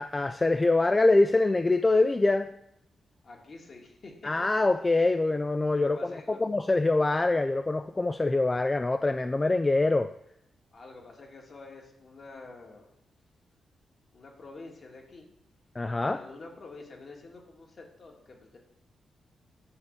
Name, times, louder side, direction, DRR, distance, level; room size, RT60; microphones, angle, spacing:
voice 1, 0.0-2.5 4.2-10.1 15.8-16.2, left 2 dB, 25° left, 9 dB, 0.3 m, -24 dB
voice 2, 3.2-4.5 5.7-6.4 10.7-12.9 14.1-15.3 16.0-18.6, left 3 dB, 50° left, 0 dB, 1.9 m, -47 dB
9.6 x 3.6 x 6.6 m, 0.79 s
cardioid pair, 75°, 0 cm